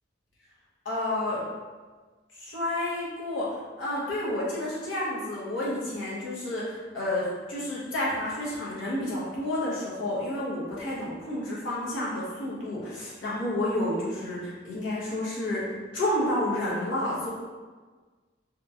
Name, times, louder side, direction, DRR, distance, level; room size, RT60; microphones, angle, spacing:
voice 1, 0.8-1.4 2.4-17.3, left 1 dB, 80° left, -7 dB, 0.9 m, -30 dB
2.9 x 2.7 x 2.4 m, 1.4 s
head